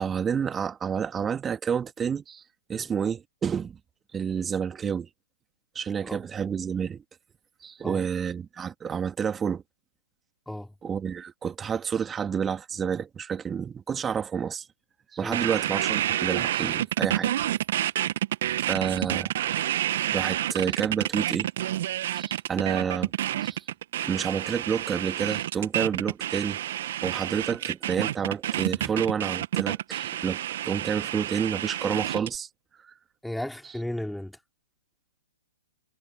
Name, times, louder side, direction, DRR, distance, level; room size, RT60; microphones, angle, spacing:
voice 1, 0.0-2.4 2.7-3.8 4.1-5.1 5.7-7.0 7.6-9.6 10.8-14.7 15.1-17.3 18.7-19.3 20.1-21.5 22.1-23.1 23.4-23.6 24.0-26.6 27.0-30.4 30.6-32.5 32.8-32.9, right 7 dB, 15° right, 2.8 m, -29 dB
sound 1, 15.3-32.4, right 12 dB, 50° right, 1.7 m, -29 dB
voice 2, 33.2-34.4, left 1 dB, ahead, 4.5 m, -35 dB
figure-of-eight pair, 120°, 0 cm